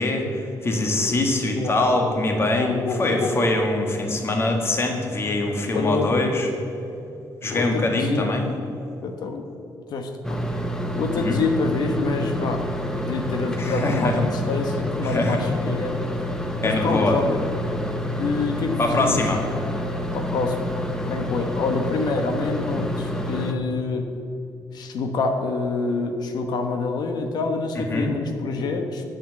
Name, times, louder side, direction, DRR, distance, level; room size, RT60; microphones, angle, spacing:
voice 1, 0.0-6.5 7.4-8.5 11.1-11.4 13.6-14.2 15.0-15.4 16.6-17.2 18.8-19.4 27.7-28.1, left 2 dB, 35° left, 3 dB, 1.6 m, -23 dB
voice 2, 2.6-3.4 5.7-6.1 7.5-8.3 9.0-9.5 9.9-10.4 11.0-12.7 13.0-16.0 16.6-17.4 18.2-19.2 20.1-20.7 21.1-24.1 24.7-29.0, left 3 dB, 70° left, 5 dB, 1.1 m, -26 dB
sound 1, 10.2-23.5, left 1 dB, 10° left, 0.9 m, -28 dB
9.1 x 7.3 x 7.7 m, 2.7 s
cardioid pair, 120°, 7 cm